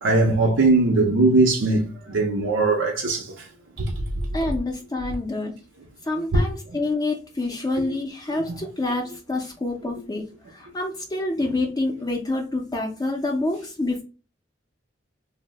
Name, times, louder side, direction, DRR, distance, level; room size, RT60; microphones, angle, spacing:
voice 1, 0.0-3.3 3.8-3.9 6.3-6.4, right 2 dB, 85° right, 0.6 m, -20 dB
voice 2, 4.3-5.5 6.0-10.2 10.5-14.0, left 2 dB, 20° left, 0.4 m, -27 dB
2.7 x 2.1 x 3.2 m
head